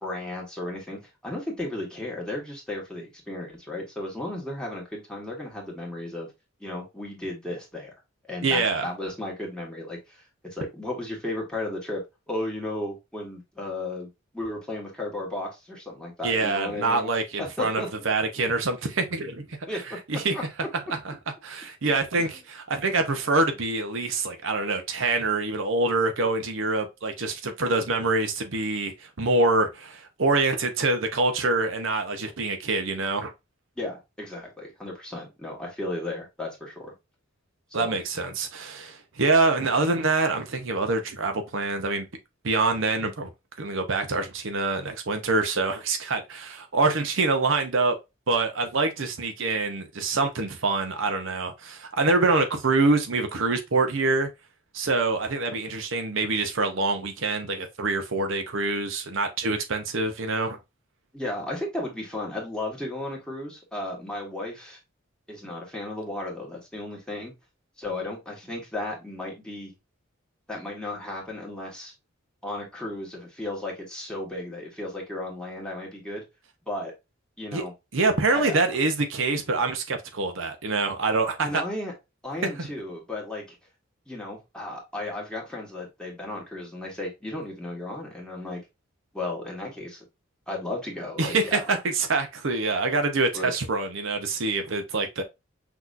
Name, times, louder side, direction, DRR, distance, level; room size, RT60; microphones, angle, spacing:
voice 1, 0.0-6.3 6.6-7.9 8.3-14.1 14.3-17.1 17.4-17.9 19.7-20.4 22.2-22.3 33.8-36.9 37.7-38.0 61.1-64.8 65.3-67.3 67.8-69.7 70.5-71.9 72.4-76.2 76.7-76.9 77.4-77.7 78.3-78.6 81.4-81.9 82.2-83.6 84.1-88.6 89.1-90.0 90.5-91.8 93.3-93.5, left 1 dB, 5° left, 1.7 m, -34 dB
voice 2, 8.4-8.9 16.2-19.4 20.1-20.3 21.0-21.1 21.4-33.3 37.7-42.1 42.4-43.3 43.6-48.0 48.3-54.3 54.7-60.6 77.5-77.6 77.9-81.6 82.6-82.7 91.2-95.2, right 3 dB, 65° right, 0.8 m, -25 dB
6.0 x 3.0 x 2.5 m
head